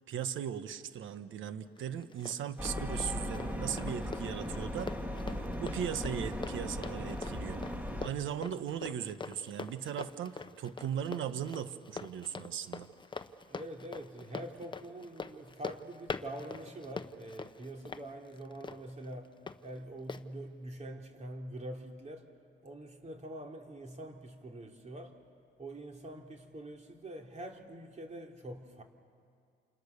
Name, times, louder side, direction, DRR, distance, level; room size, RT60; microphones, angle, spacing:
voice 1, 0.1-5.0 5.6-7.6 8.0-12.9, right 9 dB, 80° right, 1.3 m, -38 dB
Run, 1.8-19.6 20.1-20.2, left 4 dB, 25° left, 1.0 m, -44 dB
sound 1, 2.6-8.1, equal, 10° right, 2.3 m, -37 dB
voice 2, 13.5-19.3 19.6-22.3 22.6-25.2 25.6-28.8, right 1 dB, 35° right, 3.4 m, -45 dB
29.0 x 28.5 x 6.7 m
cardioid pair, 90°, 20 cm